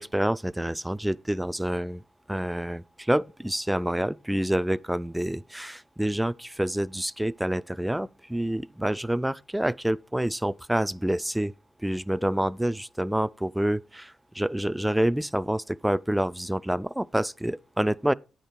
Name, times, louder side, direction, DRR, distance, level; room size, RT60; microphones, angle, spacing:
voice 1, 0.0-2.0 2.3-11.5 11.8-18.1, right 1 dB, 5° right, 0.3 m, -27 dB
9.1 x 5.2 x 4.4 m
supercardioid pair, 60°, 0 cm